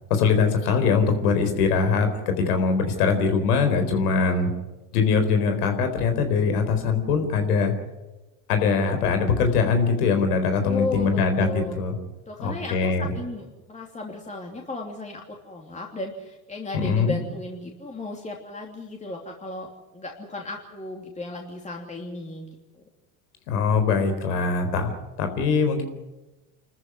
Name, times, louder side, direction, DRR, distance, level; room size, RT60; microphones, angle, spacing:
voice 1, 0.1-4.5 4.9-7.7 8.5-11.5 11.8-12.0 12.4-13.1 16.7-17.2 23.5-24.9 25.2-25.8, left 5 dB, 80° left, 7 dB, 4.3 m, -22 dB
voice 2, 10.6-11.8 12.3-22.5, left 2 dB, 15° left, 0 dB, 3.0 m, -35 dB
26.5 x 14.0 x 9.8 m, 1.1 s
hypercardioid pair, 90°, 45 cm